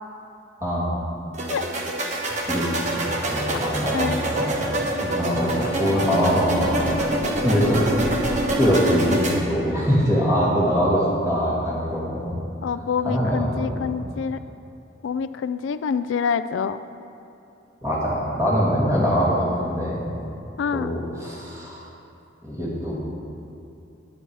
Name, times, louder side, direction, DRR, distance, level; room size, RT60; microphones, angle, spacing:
voice 1, 0.6-1.0 2.4-4.7 5.0-8.2 8.6-12.4 13.0-13.8 17.8-20.1 20.7-21.8 22.4-23.0, equal, 15° right, -7 dB, 2.4 m, -23 dB
sound 1, 1.3-9.3, right 1 dB, 40° right, 1.1 m, -26 dB
voice 2, 12.6-14.4 15.0-16.8 20.6-20.9, left 6 dB, 85° left, 13 dB, 0.3 m, -26 dB
10.0 x 9.6 x 4.8 m, 2.8 s
head